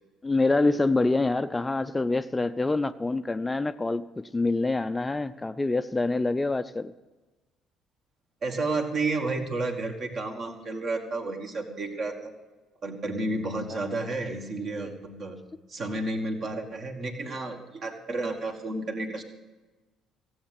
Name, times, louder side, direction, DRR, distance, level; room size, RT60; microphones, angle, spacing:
voice 1, 0.2-6.9 13.7-13.8, left 2 dB, 15° left, 0.5 m, -26 dB
voice 2, 8.4-12.3 12.8-15.4 15.7-19.2, right 2 dB, 50° right, 2.2 m, -31 dB
16.0 x 8.0 x 8.3 m
figure-of-eight pair, 50°, 0 cm